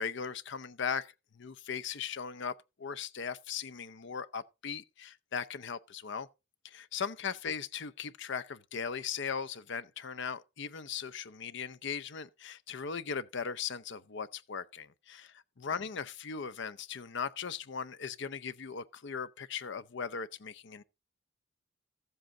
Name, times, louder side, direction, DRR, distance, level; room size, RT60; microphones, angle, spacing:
voice 1, 0.0-6.3 6.6-20.8, left 6 dB, 65° left, 0.6 m, -38 dB
14.0 x 7.8 x 3.8 m
head